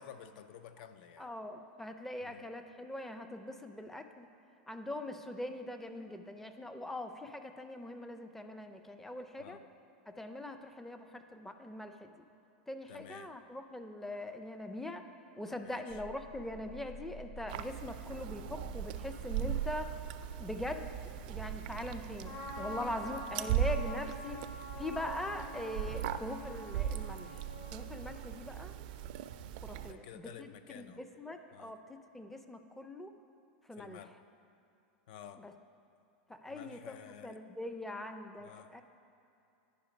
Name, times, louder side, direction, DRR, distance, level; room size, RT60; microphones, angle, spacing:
voice 1, 0.0-1.3 2.2-2.5 9.4-9.6 12.9-13.3 15.6-16.0 23.0-23.2 29.8-31.0 31.5-31.7 33.8-34.1 35.1-35.4 36.5-37.4 38.4-38.7, left 8 dB, 65° left, 10 dB, 0.5 m, -51 dB
voice 2, 1.2-4.3 4.7-9.6 10.1-12.3 12.7-15.0 15.4-19.9 20.4-20.9 21.3-24.4 24.8-27.4 27.7-28.7 29.6-30.5 30.7-33.1 33.7-34.0 35.4-35.5 36.3-36.9 37.2-38.8, left 1 dB, 5° left, 7 dB, 0.5 m, -42 dB
sound 1, 15.9-22.0, right 1 dB, 85° left, 1.7 m, -51 dB
sound 2, 17.5-29.9, right 10 dB, 60° right, 0.4 m, -39 dB
Trumpet, 22.2-28.4, left 1 dB, 45° left, 1.4 m, -46 dB
10.0 x 5.1 x 5.1 m, 2.7 s
hypercardioid pair, 120°, 5 cm